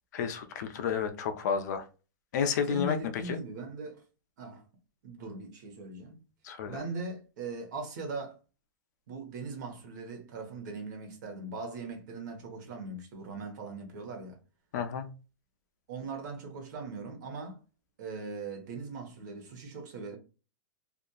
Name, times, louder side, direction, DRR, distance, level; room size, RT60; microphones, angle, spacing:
voice 1, 0.1-1.8 2.3-3.0 3.3-3.4 6.4-6.8 14.7-15.1, left 7 dB, 55° left, 0.5 m, -31 dB
voice 2, 2.7-4.0 4.4-4.6 5.0-6.2 6.7-8.4 9.1-14.4 15.9-17.6 18.0-20.2, right 3 dB, 60° right, 1.0 m, -40 dB
2.8 x 2.4 x 2.2 m
supercardioid pair, 160°, 11 cm